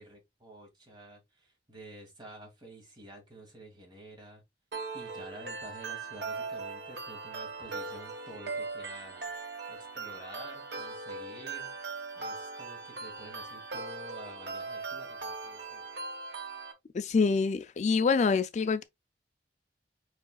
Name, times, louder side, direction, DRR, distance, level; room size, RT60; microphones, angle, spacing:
voice 1, 0.0-4.4 4.9-9.3 9.7-11.7 12.2-15.8, right 1 dB, 25° right, 2.2 m, -49 dB
sound 1, 4.7-16.7, right 4 dB, 80° right, 1.3 m, -39 dB
voice 2, 16.9-18.8, left 4 dB, 40° left, 0.3 m, -26 dB
4.8 x 4.8 x 2.3 m
head